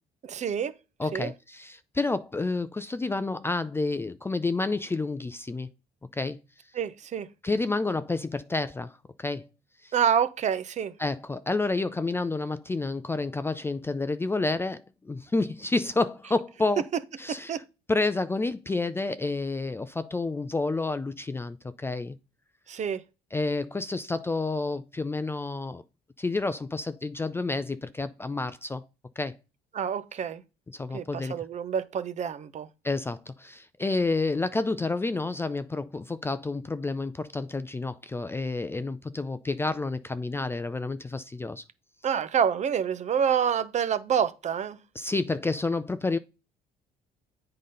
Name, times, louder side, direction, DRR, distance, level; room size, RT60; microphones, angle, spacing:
voice 1, 0.2-0.7 1.1-1.3 6.7-7.3 9.9-10.9 17.3-17.6 22.7-23.0 29.7-30.4 30.9-32.7 42.0-44.8, right 8 dB, 45° right, 0.8 m, -27 dB
voice 2, 1.0-5.7 6.1-6.4 7.4-9.5 9.8-9.9 11.0-16.8 17.2-17.6 17.9-22.2 23.3-25.8 26.2-28.9 29.2-29.4 30.7-31.3 32.8-41.6 45.0-46.2, left 3 dB, 15° left, 0.4 m, -29 dB
8.3 x 3.9 x 5.4 m
cardioid pair, 110°, 17 cm